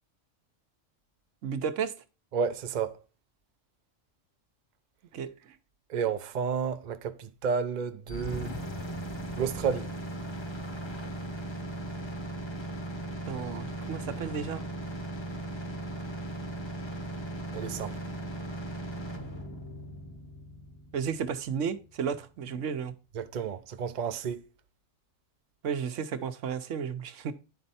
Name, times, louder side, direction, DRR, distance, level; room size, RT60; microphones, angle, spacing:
voice 1, 1.4-1.9 5.1-5.5 13.3-14.6 20.9-22.9 25.6-27.3, right 7 dB, 75° right, 1.1 m, -33 dB
voice 2, 2.3-3.0 5.9-8.5 9.3-9.9 17.5-17.9 23.1-24.4, right 6 dB, 50° right, 0.6 m, -31 dB
sound 1, 8.1-22.0, right 1 dB, 25° left, 1.0 m, -38 dB
10.0 x 4.4 x 4.1 m
omnidirectional pair, 1.3 m